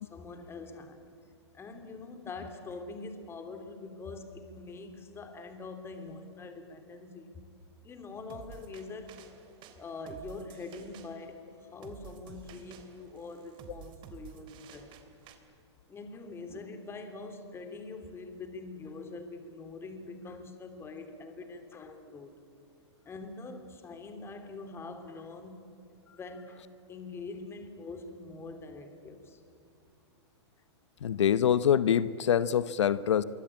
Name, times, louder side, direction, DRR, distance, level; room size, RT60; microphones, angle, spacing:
voice 1, 0.1-1.0 1.5-7.3 7.8-9.1 9.8-11.4 11.7-14.9 15.9-22.3 23.0-25.7 26.1-26.6 26.9-29.4, left 3 dB, 15° left, 7 dB, 3.2 m, -44 dB
sound 1, 8.3-15.3, right 8 dB, 35° right, 3.1 m, -51 dB
voice 2, 31.0-33.2, left 9 dB, 85° left, 16 dB, 0.8 m, -25 dB
26.5 x 24.0 x 8.6 m, 2.6 s
hypercardioid pair, 140°, 15 cm